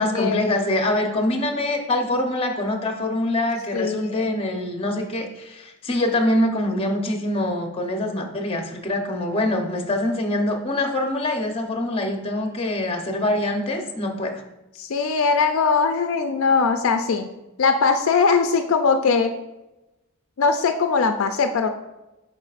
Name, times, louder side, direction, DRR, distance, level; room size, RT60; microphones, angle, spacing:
voice 1, 0.0-14.4, left 1 dB, 25° left, 3 dB, 0.8 m, -24 dB
voice 2, 3.7-4.3 14.8-17.3 17.6-19.3 20.4-21.7, left 5 dB, 65° left, 7 dB, 0.4 m, -20 dB
8.9 x 5.5 x 2.5 m, 0.99 s
head